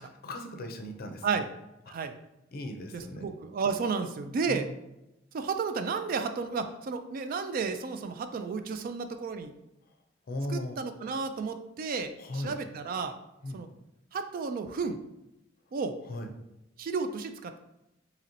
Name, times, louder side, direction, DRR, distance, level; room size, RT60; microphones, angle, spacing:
voice 1, 0.0-1.3 2.5-3.2 4.5-4.7 10.3-10.8 12.2-12.5 13.4-13.6 16.1-16.3, left 1 dB, 50° left, 5 dB, 0.5 m, -37 dB
voice 2, 2.9-4.7 5.3-9.5 10.5-13.2 13.5-13.7 14.1-15.0 15.7-15.9 16.8-17.5, right 5 dB, 50° right, 8 dB, 0.3 m, -32 dB
3.0 x 2.9 x 3.8 m, 0.91 s
head